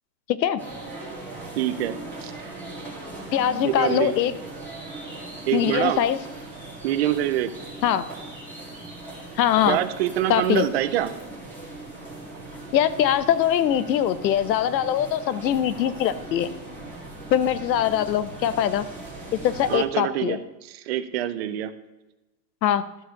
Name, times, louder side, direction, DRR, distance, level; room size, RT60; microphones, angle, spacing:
sound 1, 0.6-19.8, right 2 dB, 5° left, 2.1 m, -39 dB
voice 1, 1.6-2.3 3.6-4.1 5.5-6.0 6.8-7.5 9.7-11.1 19.7-21.7, right 12 dB, 40° right, 13 dB, 0.6 m, -25 dB
voice 2, 3.3-4.3 5.5-6.2 7.8-8.1 9.4-9.8 10.3-10.7 12.7-16.5 17.3-18.9 19.4-20.4 22.6-22.8, left 10 dB, 85° left, 15 dB, 0.9 m, -22 dB
13.0 x 4.9 x 6.4 m, 1.0 s
supercardioid pair, 155°, 50 cm